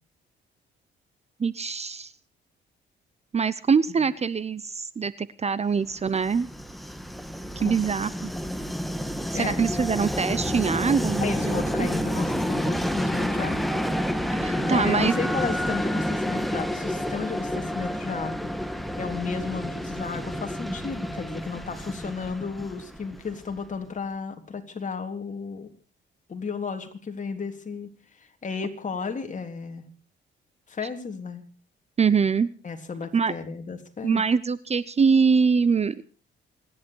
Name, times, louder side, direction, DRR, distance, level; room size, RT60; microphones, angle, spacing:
voice 1, 1.4-2.1 3.3-6.5 7.6-8.3 9.3-11.9 14.3-15.2 32.0-32.5 33.1-33.3 34.0-36.0, right 5 dB, 35° right, 18 dB, 0.8 m, -24 dB
Train, 6.0-23.7, equal, ahead, 1.8 m, -29 dB
voice 2, 11.2-13.7 14.6-25.7 26.3-27.9 28.2-29.8 30.7-31.4 32.6-34.2, left 5 dB, 40° left, 5 dB, 3.4 m, -33 dB
27.5 x 11.0 x 4.7 m, 0.37 s
cardioid pair, 90°, 20 cm